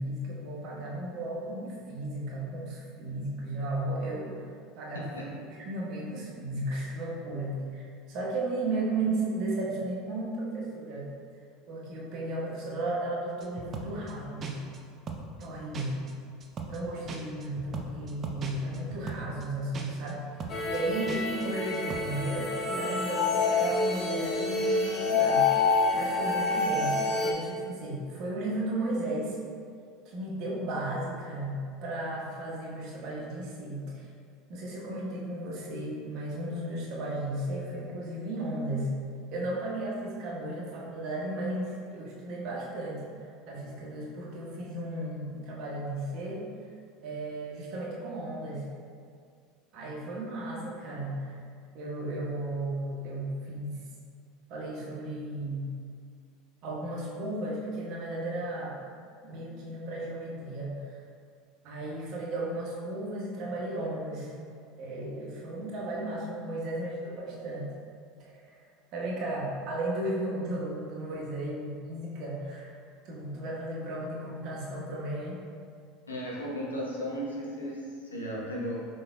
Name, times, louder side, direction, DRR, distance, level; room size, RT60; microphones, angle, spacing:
voice 1, 0.0-4.4 4.8-5.3 5.6-11.1 11.7-14.5 15.4-16.0 16.7-20.2 20.7-29.4 30.0-34.1 34.5-38.9 39.3-43.1 43.5-46.5 47.0-48.6 49.7-51.4 51.7-53.8 54.5-55.7 56.6-58.8 59.2-61.0 61.6-64.3 64.8-67.7 68.2-68.6 68.9-72.8 73.0-75.4, right 1 dB, 55° right, -4 dB, 1.1 m, -34 dB
sound 1, 13.4-14.1 14.4-14.8 15.1-15.5 15.7-16.1 16.4-16.8 17.1-19.5 19.7-20.1 20.4-20.8 21.1-21.5 21.7-22.0, right 5 dB, 35° right, 0.5 m, -39 dB
sound 2, 20.5-27.3, left 3 dB, 35° left, 0.7 m, -27 dB
voice 2, 76.1-78.9, equal, 90° left, -4 dB, 0.9 m, -35 dB
5.8 x 3.8 x 2.2 m, 2.2 s
hypercardioid pair, 80°, 0 cm